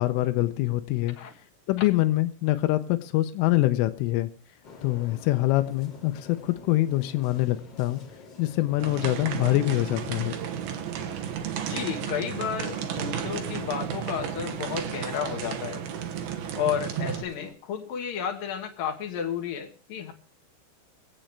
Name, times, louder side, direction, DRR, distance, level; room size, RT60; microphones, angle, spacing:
voice 1, 0.0-1.2 1.7-4.3 4.8-8.0 8.4-10.4, left 17 dB, 90° left, 9 dB, 3.4 m, -25 dB
sound 1, 4.6-17.5, left 4 dB, 45° left, 1.5 m, -48 dB
sound 2, 8.8-17.2, right 9 dB, 70° right, 2.6 m, -33 dB
voice 2, 11.6-15.8 16.6-20.1, left 8 dB, 60° left, 5 dB, 2.6 m, -32 dB
26.0 x 8.9 x 3.3 m, 0.39 s
omnidirectional pair, 5.6 m